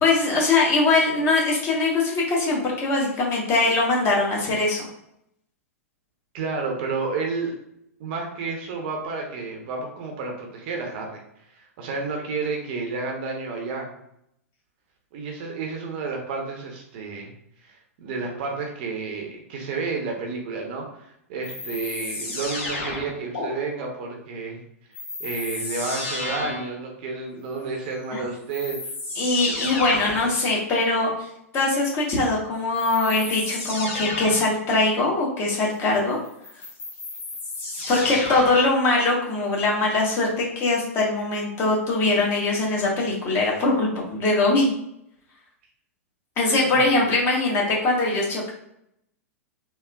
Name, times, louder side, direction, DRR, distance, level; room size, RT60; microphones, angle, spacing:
voice 1, 0.0-4.8 28.1-28.2 29.2-31.1 31.5-36.2 37.9-44.7 46.4-48.5, left 2 dB, 30° left, -3 dB, 1.1 m, -22 dB
voice 2, 6.3-7.6 8.0-11.2 11.5-13.9 15.1-17.3 17.6-24.6 25.2-28.9 37.9-38.1 46.6-47.0, right 4 dB, 45° right, 2 dB, 0.7 m, -31 dB
sound 1, 21.4-23.5 24.9-26.8 28.0-28.1 28.5-30.4 32.7-34.5 36.2-38.7, left 2 dB, 55° left, 1.5 m, -32 dB
3.5 x 2.4 x 2.3 m, 0.77 s
figure-of-eight pair, 100°, 8 cm